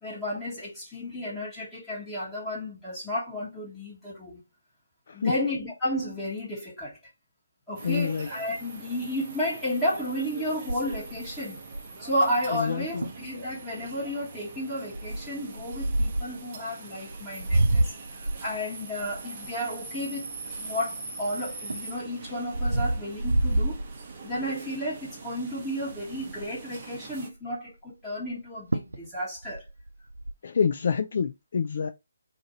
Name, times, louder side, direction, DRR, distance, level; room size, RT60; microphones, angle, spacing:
voice 1, 0.0-4.4 5.1-7.0 7.7-11.6 12.0-20.3 20.6-23.8 24.2-29.6, equal, 10° left, 1.1 m, -32 dB
sound 1, 7.7-27.3, right 4 dB, 30° right, 0.8 m, -43 dB
voice 2, 7.8-8.3 12.5-13.1 30.4-31.9, left 6 dB, 45° left, 0.4 m, -27 dB
sound 2, 10.7-12.1 12.7-12.8 13.0-13.3 13.8-14.1 14.9-16.4 17.1-21.0 21.5-24.5 25.0-25.2 25.5-25.6 25.9-26.6 28.3-28.4 28.7-29.1 29.4-30.3, right 1 dB, 75° right, 0.4 m, -28 dB
2.6 x 2.5 x 4.0 m
figure-of-eight pair, 150°, 0 cm